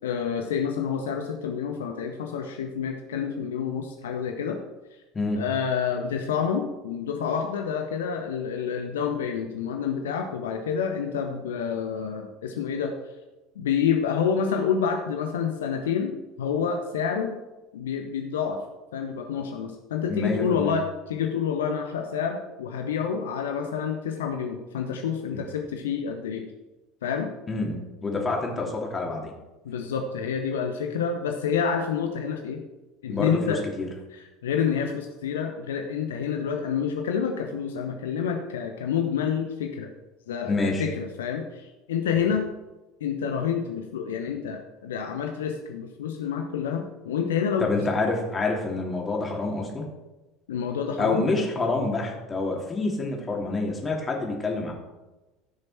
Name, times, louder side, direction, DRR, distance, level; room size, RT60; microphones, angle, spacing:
voice 1, 0.0-4.6 5.3-12.9 13.6-17.4 17.7-18.6 18.9-26.4 27.0-27.3 29.6-32.6 33.0-33.6 34.1-39.9 40.3-42.4 43.0-47.7 50.5-51.3, left 7 dB, 70° left, 3 dB, 0.9 m, -28 dB
voice 2, 20.1-20.7 27.5-29.3 33.1-33.9 40.5-40.9 47.6-49.8 51.0-54.7, left 3 dB, 20° left, -1 dB, 2.9 m, -27 dB
15.0 x 6.5 x 4.3 m, 1.1 s
figure-of-eight pair, 70°, 0 cm